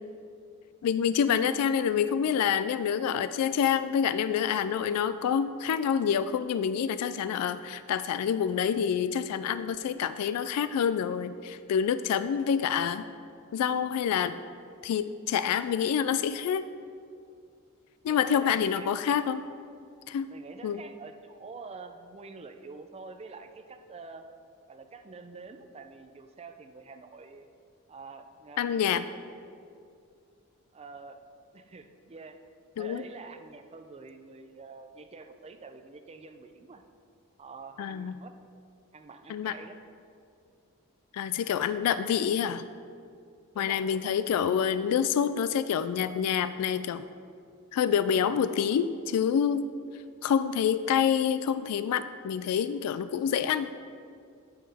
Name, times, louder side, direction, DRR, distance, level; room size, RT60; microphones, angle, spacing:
voice 1, 0.8-13.0 13.5-14.3 14.8-16.6 18.0-19.4 20.1-20.3 20.6-20.8 28.6-29.0 32.8-33.0 37.8-38.2 39.3-39.5 41.1-42.6 43.6-47.0 47.7-49.7 50.2-53.7, left 8 dB, 85° left, 13 dB, 0.3 m, -27 dB
voice 2, 18.1-18.9 20.3-24.3 24.7-27.5 27.9-29.6 30.7-31.2 31.5-32.4 32.8-36.8 37.4-38.3 38.9-39.8 43.5-44.2, right 4 dB, 25° right, 7 dB, 0.4 m, -47 dB
9.2 x 6.6 x 3.4 m, 2.3 s
head